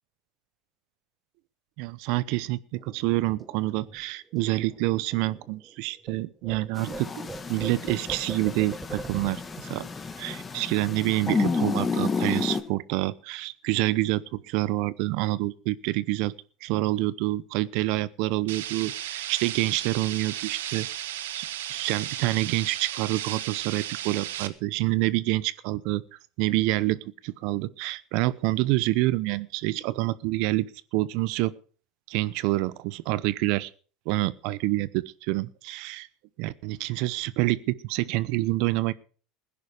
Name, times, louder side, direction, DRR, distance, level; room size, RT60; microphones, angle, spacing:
voice 1, 1.8-7.1 7.5-9.9 10.2-16.3 16.6-20.9 21.3-26.0 26.4-30.7 30.9-31.5 32.1-33.7 34.1-36.1 36.4-38.9, right 19 dB, 65° right, 19 dB, 0.8 m, -27 dB
sound 1, 2.8-6.2 6.4-11.4 11.7-11.9 12.2-12.8, right 3 dB, 20° right, 1.3 m, -44 dB
sound 2, 6.8-12.6, left 4 dB, 25° left, 2.1 m, -31 dB
sound 3, 18.5-24.5, right 12 dB, 85° right, 1.2 m, -34 dB
16.5 x 10.5 x 4.9 m, 0.41 s
hypercardioid pair, 95°, 0 cm